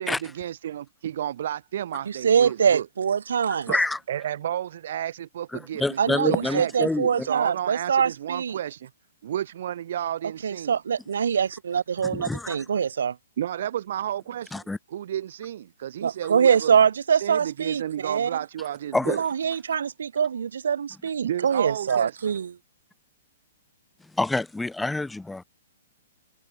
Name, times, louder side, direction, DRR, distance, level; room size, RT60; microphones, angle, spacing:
voice 1, 0.0-2.8 3.7-3.8 4.1-6.0 6.2-6.7 7.2-8.9 9.2-10.8 13.4-14.5 14.9-16.8 17.1-19.2 21.2-22.2, right 11 dB, 60° right, 1.2 m, -31 dB
voice 2, 2.1-3.7 6.0-8.6 10.4-13.2 16.0-18.3 19.1-22.5, right 7 dB, 85° right, 0.5 m, -24 dB
voice 3, 3.7-4.0 5.5-7.3 12.0-12.6 14.5-14.8 18.9-19.2 24.1-25.4, left 2 dB, 5° left, 0.5 m, -27 dB
hypercardioid pair, 155°, 0 cm